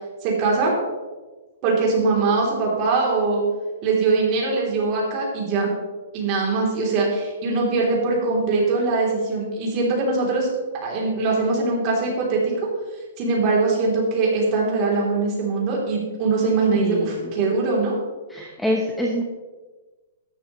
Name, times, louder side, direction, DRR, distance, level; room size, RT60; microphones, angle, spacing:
voice 1, 0.2-0.8 1.6-3.4 3.8-5.7 6.1-10.5 10.8-12.5 13.2-17.9, right 3 dB, 30° right, -2 dB, 3.2 m, -22 dB
voice 2, 16.8-17.3 18.3-19.2, equal, ahead, -1 dB, 0.9 m, -26 dB
13.5 x 11.0 x 3.1 m, 1.3 s
hypercardioid pair, 165°, 0 cm